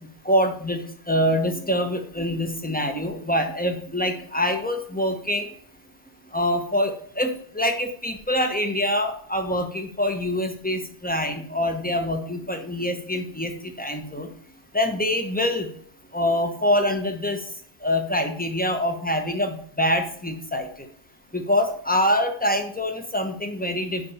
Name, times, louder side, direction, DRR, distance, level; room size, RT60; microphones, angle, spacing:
voice 1, 0.2-0.8 1.1-5.4 6.3-13.5 13.8-14.3 14.7-15.7 16.1-17.4 17.8-20.7 21.3-24.1, left 1 dB, 10° left, 5 dB, 1.1 m, -25 dB
9.9 x 4.3 x 5.6 m, 0.62 s
omnidirectional pair, 1.2 m